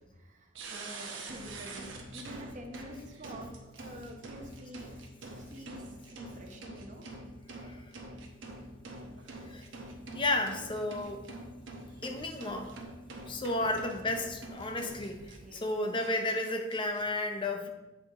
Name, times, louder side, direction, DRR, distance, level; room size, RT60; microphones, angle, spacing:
voice 1, 0.0-4.9 5.4-7.1 7.6-7.7 8.7-8.8 13.6-13.7 15.4-15.6 17.6-17.7, right 1 dB, 40° right, 3 dB, 0.9 m, -48 dB
sound 1, 0.5-15.6 16.0-16.1 16.4-17.0, right 2 dB, 80° right, 1.2 m, -45 dB
voice 2, 10.1-11.3 12.0-12.7 13.3-17.7, left 2 dB, 25° left, 4 dB, 0.6 m, -33 dB
8.8 x 4.8 x 3.6 m, 1.1 s
head